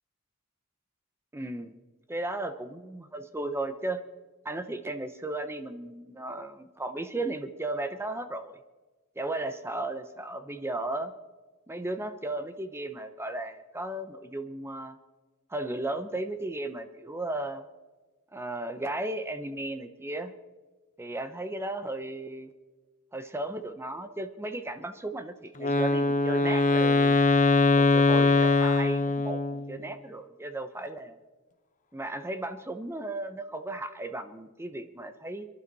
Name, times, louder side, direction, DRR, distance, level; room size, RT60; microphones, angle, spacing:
voice 1, 1.3-1.7 2.1-4.0 4.4-8.6 9.2-11.1 11.7-15.0 15.5-17.6 18.3-20.3 21.0-22.5 23.1-27.2 27.7-29.4 29.7-31.2 31.9-35.5, right 2 dB, 10° right, 9 dB, 0.7 m, -35 dB
Wind instrument woodwind instrument, 25.6-29.8, left 3 dB, 35° left, 1.0 m, -22 dB
27.0 x 11.5 x 4.1 m, 1.3 s
head